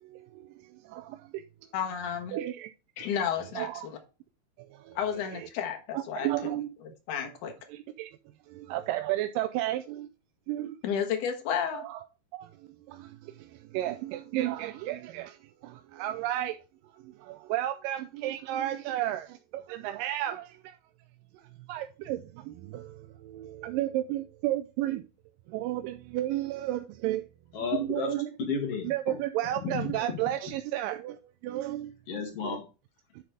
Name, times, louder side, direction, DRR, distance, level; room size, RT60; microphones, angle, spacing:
voice 1, 1.7-2.4 3.0-4.0 5.0-6.6 6.8-7.5 10.8-11.8, left 8 dB, 65° left, 2.6 m, -32 dB
voice 2, 6.2-6.7 8.7-9.8 10.5-10.6 11.7-12.0 13.8-13.9 14.3-15.2 16.0-16.5 17.5-19.2 19.8-20.4 21.7-22.2 23.6-25.0 25.5-27.2 27.8-28.3 28.8-31.1 31.5-31.8, right 14 dB, 80° right, 2.1 m, -31 dB
voice 3, 27.5-29.2 29.6-30.2 32.1-32.7, left 6 dB, 50° left, 2.3 m, -33 dB
10.0 x 3.9 x 4.8 m
omnidirectional pair, 4.2 m